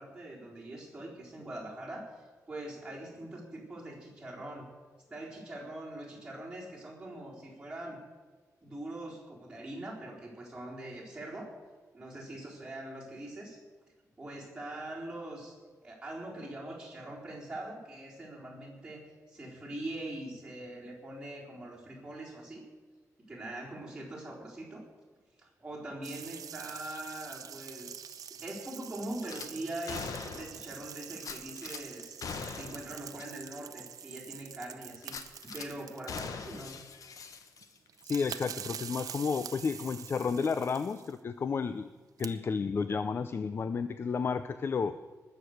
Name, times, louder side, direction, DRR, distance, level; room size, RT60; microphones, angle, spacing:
voice 1, 0.0-4.7 5.1-8.0 8.6-11.5 11.9-13.6 14.2-15.6 15.8-22.6 23.3-24.8 25.4-32.2 32.4-36.8, right 1 dB, 15° right, -4 dB, 4.0 m, -43 dB
sound 1, 26.0-36.6 37.6-37.7 37.9-41.2 42.0-42.3, right 8 dB, 75° right, 0.7 m, -45 dB
Gunshot gunfire / Glass, 29.2-29.5 29.9-30.6 31.2-31.8 32.2-32.9 33.2-33.3 33.7-33.8 35.0-35.7 36.1-37.9 38.2-38.4, left 5 dB, 65° left, 1.2 m, -41 dB
voice 2, 38.0-41.9 42.2-45.0, left 5 dB, 40° left, 12 dB, 0.4 m, -32 dB
20.0 x 6.7 x 7.9 m, 1.4 s
wide cardioid pair, 165°, 6 cm